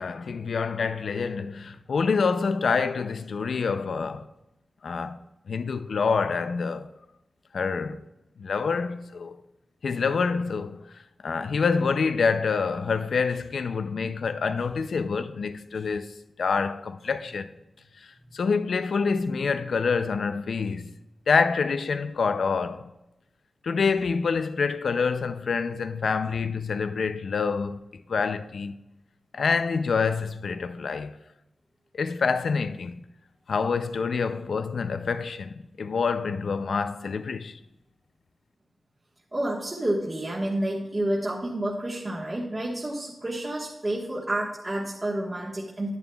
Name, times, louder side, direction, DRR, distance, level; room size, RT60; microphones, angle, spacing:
voice 1, 0.0-4.3 4.8-5.2 5.5-6.9 7.5-8.0 8.4-9.4 9.8-17.5 18.0-20.9 21.3-22.9 23.6-28.8 29.3-31.1 31.9-33.0 33.5-37.6, left 5 dB, 75° left, 0.4 m, -27 dB
voice 2, 39.3-45.9, right 1 dB, 30° right, 1.3 m, -29 dB
10.5 x 10.5 x 2.3 m
wide cardioid pair, 150°, 0 cm